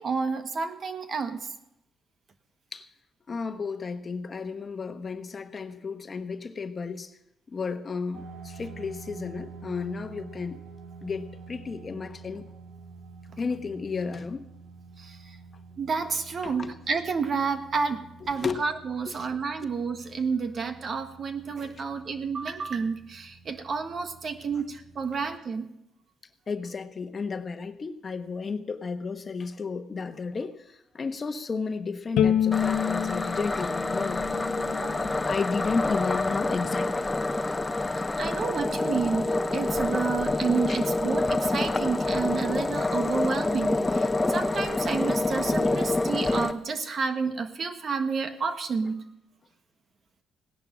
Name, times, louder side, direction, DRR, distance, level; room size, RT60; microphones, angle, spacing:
voice 1, 0.0-1.4 15.0-15.2 15.8-25.6 34.8-35.1 38.2-49.0, right 5 dB, 50° right, 1.6 m, -30 dB
voice 2, 3.3-7.2 7.5-10.6 11.0-12.5 13.4-14.5 16.4-16.7 18.3-18.6 19.0-19.2 21.9-22.0 26.5-34.2 34.7-35.0 35.3-37.6 38.1-38.3 40.7-40.8, left 4 dB, 40° left, 1.1 m, -33 dB
sound 1, 8.1-25.4, right 4 dB, 65° right, 2.4 m, -48 dB
Bowed string instrument, 32.2-35.4, left 9 dB, 85° left, 0.7 m, -28 dB
sound 2, 32.5-46.5, left 2 dB, 15° left, 1.0 m, -27 dB
17.0 x 10.5 x 6.3 m
cardioid pair, 90°, 0 cm